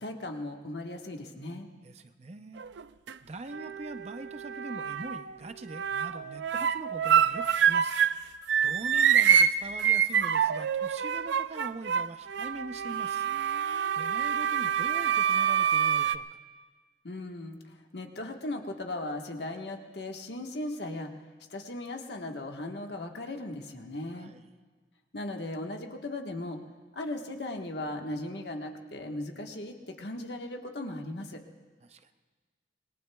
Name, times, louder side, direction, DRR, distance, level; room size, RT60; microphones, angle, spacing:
voice 1, 0.0-1.7 17.0-21.1 21.5-24.3 25.1-26.6 26.9-31.4, left 1 dB, 70° left, 3 dB, 1.3 m, -37 dB
voice 2, 1.8-2.6 3.2-8.0 8.6-13.3 13.9-16.4 24.1-24.4 31.8-32.1, right 2 dB, 35° right, 9 dB, 0.6 m, -42 dB
sound 1, 2.6-3.1 3.5-5.3 5.7-8.2 8.5-16.2, right 8 dB, 80° right, 0.4 m, -26 dB
27.0 x 21.0 x 2.3 m, 1.4 s
head